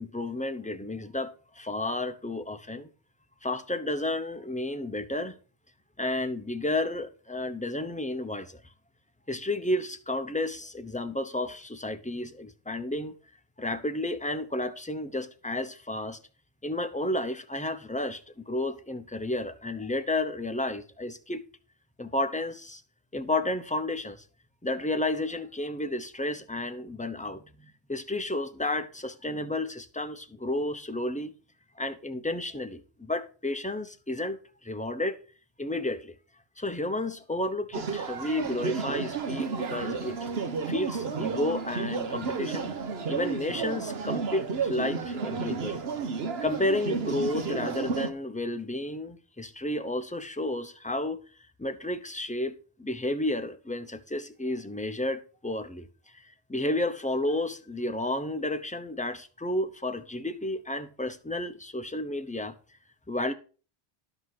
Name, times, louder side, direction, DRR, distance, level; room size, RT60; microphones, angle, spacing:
voice 1, 0.0-2.9 3.4-5.4 6.0-8.6 9.3-13.1 13.6-16.2 16.6-21.4 22.0-22.8 23.1-24.2 24.6-31.3 31.8-35.2 35.6-36.2 36.6-40.2 40.7-42.7 43.1-45.8 46.4-51.2 51.6-55.9 56.1-62.5 63.1-63.3, left 1 dB, 10° left, 0.6 m, -32 dB
sound 1, 37.7-48.1, right 5 dB, 70° right, 1.2 m, -32 dB
11.5 x 5.4 x 5.7 m
omnidirectional pair, 1.1 m